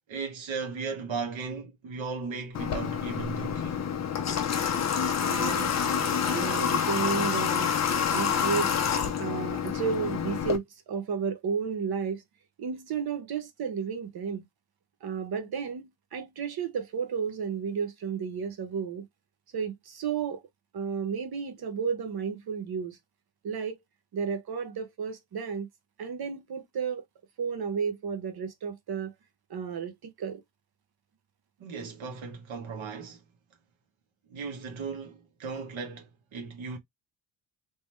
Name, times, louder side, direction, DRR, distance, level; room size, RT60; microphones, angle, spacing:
voice 1, 0.1-3.9 31.6-33.2 34.3-36.8, right 5 dB, 70° right, 1.5 m, -36 dB
Water / Water tap faucet, 2.5-10.6, left 7 dB, 35° left, 0.6 m, -28 dB
voice 2, 5.3-7.7 8.1-8.7 9.2-12.2 12.6-14.4 15.0-19.1 19.5-20.5 20.7-23.0 23.4-23.7 24.1-25.7 26.0-27.0 27.4-29.1 29.5-30.4, right 6 dB, 50° right, 1.0 m, -32 dB
3.7 x 2.9 x 3.0 m
cardioid pair, 175°, 49 cm